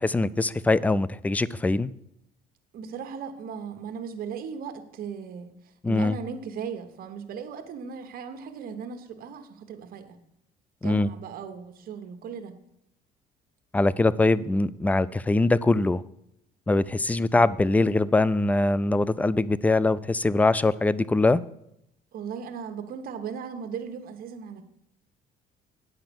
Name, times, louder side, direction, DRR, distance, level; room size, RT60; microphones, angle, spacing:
voice 1, 0.0-1.9 5.8-6.2 10.8-11.1 13.7-16.0 16.7-21.4, left 2 dB, 10° left, 19 dB, 0.3 m, -22 dB
voice 2, 2.7-5.5 5.9-10.2 10.8-12.5 22.1-24.6, right 6 dB, 60° right, 7 dB, 1.2 m, -37 dB
9.0 x 5.8 x 6.9 m, 0.79 s
cardioid pair, 110°, 17 cm